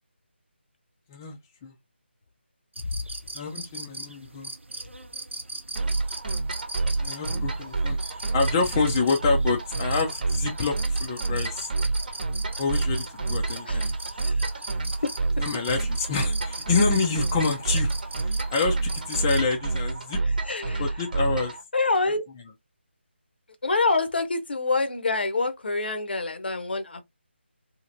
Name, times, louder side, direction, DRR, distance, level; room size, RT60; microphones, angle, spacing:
sound 1, 2.8-19.4, right 2 dB, 80° right, 0.7 m, -39 dB
voice 1, 3.3-4.5 7.0-11.7 12.6-13.9 15.4-17.9 18.2-20.2 20.8-21.5, left 4 dB, 15° left, 0.4 m, -27 dB
sound 2, 5.8-21.6, right 3 dB, 45° right, 1.0 m, -28 dB
voice 2, 20.2-20.9 21.7-22.3 23.6-27.0, left 3 dB, 60° left, 0.8 m, -26 dB
3.0 x 2.7 x 2.5 m
figure-of-eight pair, 160°, 6 cm